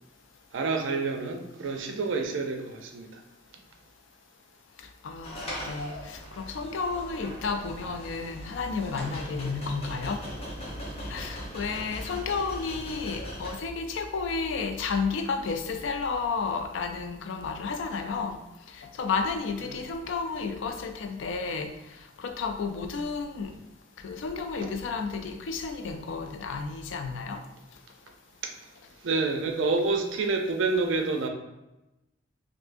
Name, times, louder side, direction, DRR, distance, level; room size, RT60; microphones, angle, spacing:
voice 1, 0.5-3.1 19.7-19.8 23.5-23.6 24.6-24.7 28.4-28.5 29.0-31.3, right 3 dB, 85° right, 4 dB, 0.4 m, -28 dB
voice 2, 5.0-10.2 11.1-18.4 18.7-23.5 24.0-27.4, left 4 dB, 80° left, 6 dB, 0.4 m, -32 dB
sound 1, 5.2-13.5, equal, 30° left, 0.7 m, -40 dB
3.4 x 2.6 x 2.5 m, 0.96 s
head